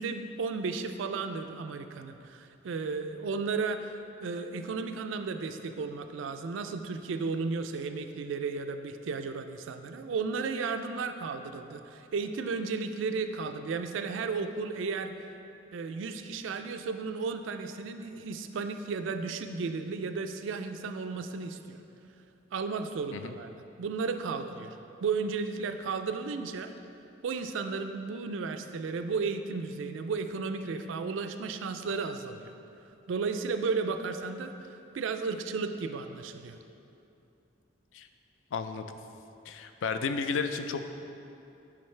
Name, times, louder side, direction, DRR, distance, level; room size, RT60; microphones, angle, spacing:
voice 1, 0.0-3.9 4.2-15.1 15.7-21.8 22.5-23.5 23.8-24.7 25.0-26.7 27.2-32.5 33.1-34.5 34.9-36.6, right 4 dB, 75° right, 8 dB, 0.3 m, -34 dB
voice 2, 38.5-38.9 39.5-40.8, left 5 dB, 75° left, 8 dB, 0.4 m, -32 dB
9.8 x 3.8 x 3.2 m, 2.8 s
head